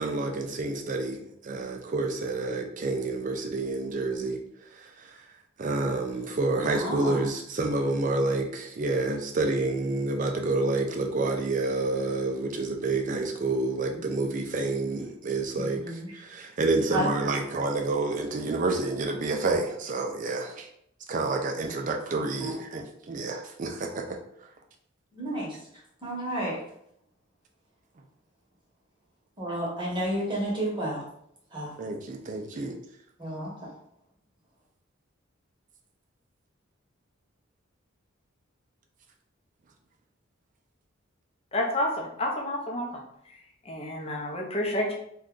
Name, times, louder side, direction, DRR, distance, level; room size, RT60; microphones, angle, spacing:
voice 1, 0.0-4.4 4.7-4.9 5.6-20.7 21.1-24.2 31.8-32.8, right 3 dB, 40° right, 3 dB, 0.4 m, -29 dB
voice 2, 6.6-7.2 15.5-16.1 16.9-17.1 22.2-22.6 25.1-25.6 26.0-26.6 29.4-31.1 31.5-31.7 33.2-33.5, right 1 dB, 25° right, -4 dB, 0.9 m, -31 dB
voice 3, 41.5-43.0 43.7-44.9, left 1 dB, 30° left, 0 dB, 0.6 m, -29 dB
2.6 x 2.3 x 3.7 m, 0.73 s
head